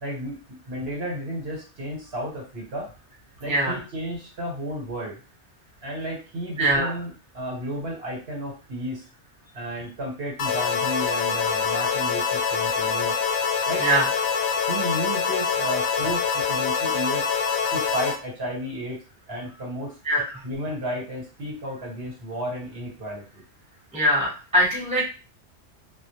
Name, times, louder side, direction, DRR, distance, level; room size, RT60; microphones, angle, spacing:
voice 1, 0.0-2.9 3.4-5.2 5.8-9.0 9.5-13.1 13.7-13.8 14.7-17.3 17.7-19.0 19.3-19.9 20.4-23.4, equal, 60° right, -2 dB, 1.1 m, -33 dB
voice 2, 3.4-3.8 6.6-6.9 13.8-14.1 20.0-20.4 23.9-25.0, equal, 5° right, -5 dB, 0.9 m, -22 dB
sound 1, 10.4-18.2, left 6 dB, 80° left, 0.9 m, -25 dB
2.2 x 2.1 x 2.8 m, 0.34 s
omnidirectional pair, 1.2 m